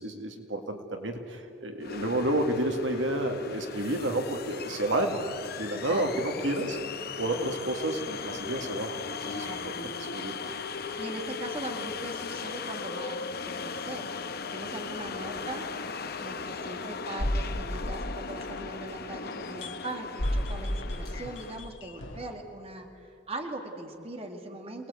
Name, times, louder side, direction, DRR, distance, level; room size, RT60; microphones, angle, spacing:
voice 1, 0.0-5.2 5.6-6.8 7.2-9.7 10.0-10.4, right 1 dB, 70° right, 4 dB, 2.1 m, -30 dB
sound 1, 1.8-21.7, left 5 dB, 55° left, 0.9 m, -38 dB
voice 2, 5.7-6.3 7.3-7.4 9.4-9.9 10.8-15.7 16.2-24.9, right 2 dB, 30° right, 3 dB, 2.0 m, -40 dB
sound 2, 16.0-16.2 17.2-18.8 19.6-19.9 20.2-22.4, equal, 90° left, 1.9 m, -32 dB
28.0 x 19.5 x 8.3 m, 2.7 s
head